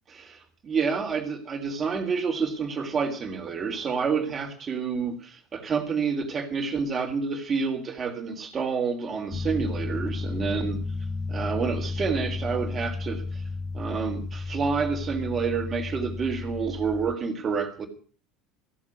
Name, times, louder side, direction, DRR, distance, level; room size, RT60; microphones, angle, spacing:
voice 1, 0.1-10.8 11.3-13.4 13.7-17.9, right 5 dB, 35° right, 4 dB, 3.5 m, -29 dB
sound 1, 9.3-17.1, left 3 dB, 20° left, 1.0 m, -33 dB
16.0 x 7.4 x 9.5 m, 0.42 s
figure-of-eight pair, 70°, 0 cm